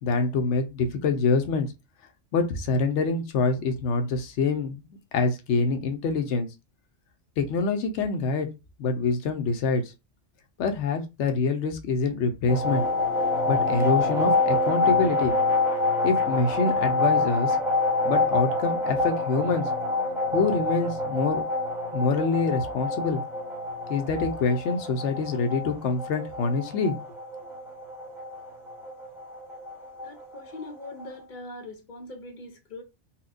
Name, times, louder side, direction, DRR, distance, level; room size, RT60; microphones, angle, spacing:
voice 1, 0.0-1.7 2.3-4.8 5.1-6.5 7.4-8.5 8.8-9.8 10.6-12.9 13.5-15.3 16.0-17.6 18.0-19.7 20.3-21.4 21.9-23.2 23.9-27.0, left 4 dB, 75° left, 1.0 m, -25 dB
sound 1, 12.5-31.1, left 2 dB, ahead, 1.0 m, -27 dB
voice 2, 30.0-32.8, left 2 dB, 50° left, 0.7 m, -41 dB
4.2 x 2.2 x 2.5 m
omnidirectional pair, 1.3 m